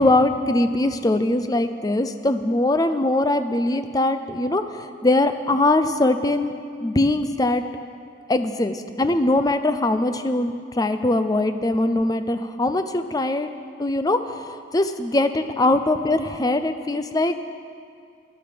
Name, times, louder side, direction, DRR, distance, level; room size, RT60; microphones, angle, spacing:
voice 1, 0.0-6.5 6.8-7.6 8.3-13.5 13.8-17.3, left 2 dB, 20° left, 9 dB, 0.5 m, -21 dB
14.5 x 12.0 x 5.1 m, 2.3 s
head